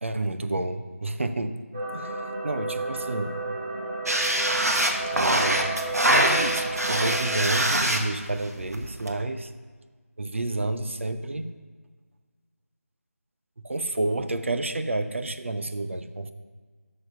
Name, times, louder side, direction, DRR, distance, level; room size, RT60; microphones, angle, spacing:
voice 1, 0.0-1.6 1.9-2.1 2.4-3.3 5.1-5.8 6.1-9.5 10.2-11.5 13.6-16.3, right 2 dB, 55° right, 8 dB, 0.7 m, -29 dB
sound 1, 1.7-7.8, right 3 dB, 20° right, 1.0 m, -32 dB
sound 2, 4.1-9.1, right 1 dB, 80° right, 1.4 m, -24 dB
9.0 x 6.6 x 5.7 m, 1.5 s
figure-of-eight pair, 165°, 8 cm